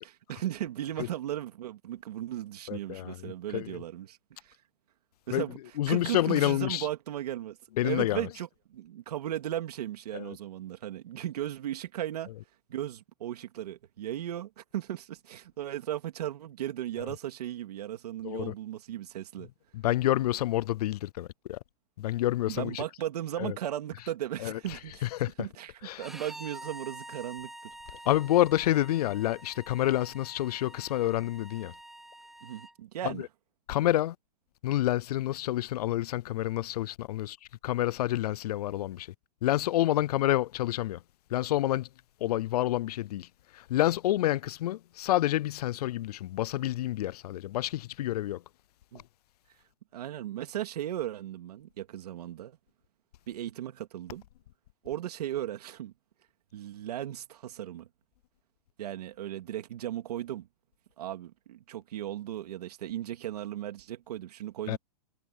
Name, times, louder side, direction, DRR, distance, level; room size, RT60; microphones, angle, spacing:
voice 1, 0.0-4.2 4.4-4.5 5.3-7.6 7.8-12.3 12.7-19.5 22.5-25.0 25.4-25.7 26.0-27.7 32.4-33.3 48.9-49.0 49.9-52.6 53.3-54.2 54.8-55.9 56.5-57.9 58.8-60.5 61.0-64.8, right 12 dB, 75° right, 2.4 m, -36 dB
voice 2, 2.7-3.7 5.3-5.4 5.8-6.9 7.8-8.3 10.1-10.4 18.2-18.5 19.7-21.6 22.0-22.8 23.4-23.5 24.4-24.6 25.0-25.3 25.8-26.1 28.1-31.7 33.0-33.3 33.7-34.2 34.6-37.4 37.6-39.1 39.4-41.0 41.3-41.9 42.2-43.3 43.5-48.4 64.7-64.8, left 14 dB, 70° left, 0.4 m, -28 dB
Bowed string instrument, 26.0-32.7, right 1 dB, ahead, 2.7 m, -47 dB
supercardioid pair, 180°, 20 cm